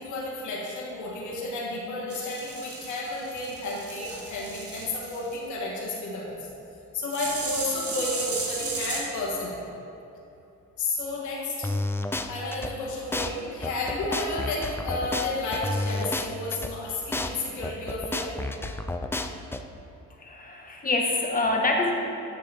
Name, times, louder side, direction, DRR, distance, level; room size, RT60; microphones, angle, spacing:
voice 1, 0.0-6.4 6.9-9.6 10.8-11.7 12.3-18.3, left 2 dB, 75° left, -5 dB, 1.7 m, -32 dB
sound 1, 2.1-5.4 7.1-9.0, right 3 dB, 50° right, 1.6 m, -34 dB
sound 2, 11.6-12.7 13.1-13.3 13.6-16.7 17.1-17.3 17.6-19.6, left 2 dB, 10° left, 0.4 m, -30 dB
voice 2, 20.2-21.9, left 2 dB, 30° left, 0 dB, 1.3 m, -25 dB
9.7 x 6.6 x 3.5 m, 2.8 s
cardioid pair, 90°, 30 cm